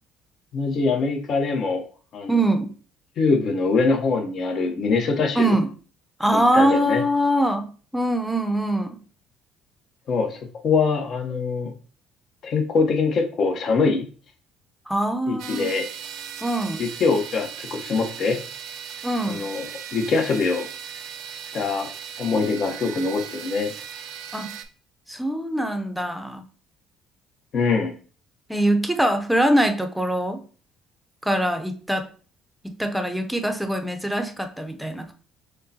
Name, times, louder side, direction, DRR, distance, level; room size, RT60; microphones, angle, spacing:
voice 1, 0.5-1.8 2.1-2.4 3.2-5.6 6.3-7.0 10.1-11.7 12.4-14.1 15.3-15.8 16.8-18.4 19.3-19.6 19.9-20.7 21.5-21.9 22.2-23.7 27.5-28.0, left 4 dB, 55° left, 3 dB, 0.8 m, -23 dB
voice 2, 2.3-2.7 5.3-5.7 6.2-9.0 14.9-15.7 16.4-16.8 19.0-19.5 24.3-24.5 25.1-26.4 28.5-30.4 31.2-32.1 32.6-35.1, right 1 dB, 5° right, 6 dB, 0.6 m, -23 dB
sound 1, 15.4-24.6, right 8 dB, 75° right, 0.4 m, -37 dB
6.3 x 2.2 x 2.7 m, 0.40 s
supercardioid pair, 85°, 0 cm